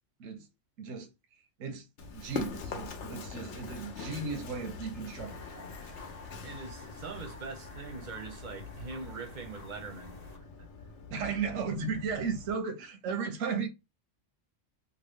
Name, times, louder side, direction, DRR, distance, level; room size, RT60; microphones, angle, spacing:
voice 1, 0.8-1.1 1.6-5.7 11.1-13.7, right 5 dB, 90° right, 1.1 m, -35 dB
Run, 2.0-12.5, left 4 dB, 70° left, 1.0 m, -44 dB
sound 1, 5.1-10.4, left 3 dB, 40° left, 0.7 m, -50 dB
voice 2, 6.4-10.2 10.6-10.7, right 4 dB, 45° right, 0.7 m, -42 dB
2.9 x 2.4 x 3.3 m
omnidirectional pair, 1.3 m